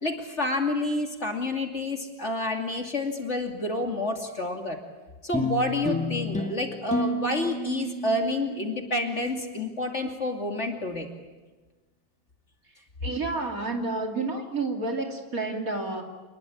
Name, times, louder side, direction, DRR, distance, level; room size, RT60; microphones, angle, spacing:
voice 1, 0.0-4.8 5.2-11.1, left 1 dB, 35° left, 3 dB, 2.9 m, -29 dB
sound 1, 5.3-10.0, left 2 dB, 5° left, 1.8 m, -32 dB
voice 2, 13.0-16.0, right 3 dB, 45° right, 3 dB, 3.2 m, -30 dB
27.5 x 21.0 x 8.7 m, 1.3 s
omnidirectional pair, 2.1 m